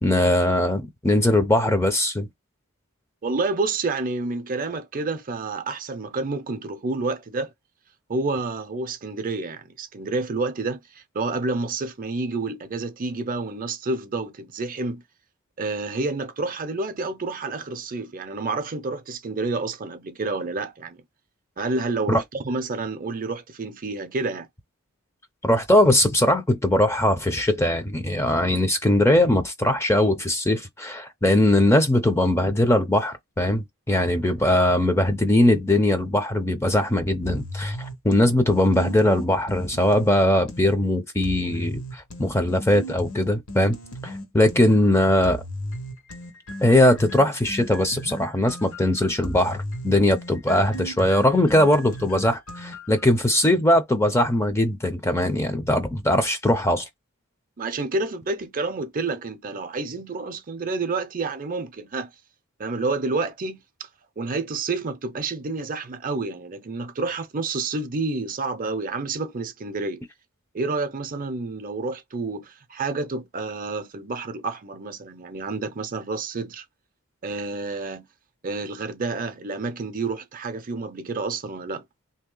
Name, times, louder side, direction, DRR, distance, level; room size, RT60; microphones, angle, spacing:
voice 1, 0.0-2.3 22.1-22.2 25.4-43.8 44.0-45.4 46.6-56.8, left 1 dB, 10° left, 0.5 m, -20 dB
voice 2, 3.2-7.5 8.1-15.0 15.6-21.0 21.6-24.5 57.6-62.1 62.6-63.9 64.2-70.0 70.5-76.6 77.2-78.1 78.4-81.8, right 3 dB, 40° right, 0.6 m, -29 dB
sound 1, 37.2-40.8 41.2-44.8 45.2-53.0, equal, 75° left, 1.4 m, -35 dB
3.1 x 2.8 x 3.8 m
head